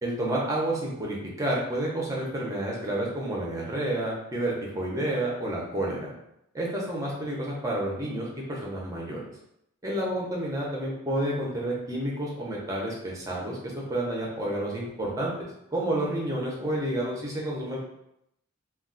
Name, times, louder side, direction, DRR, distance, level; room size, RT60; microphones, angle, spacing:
voice 1, 0.0-6.1 6.5-9.2 9.8-13.6 13.9-15.3 15.7-17.8, right 1 dB, 15° right, -3 dB, 0.6 m, -30 dB
2.4 x 2.2 x 3.7 m, 0.80 s
head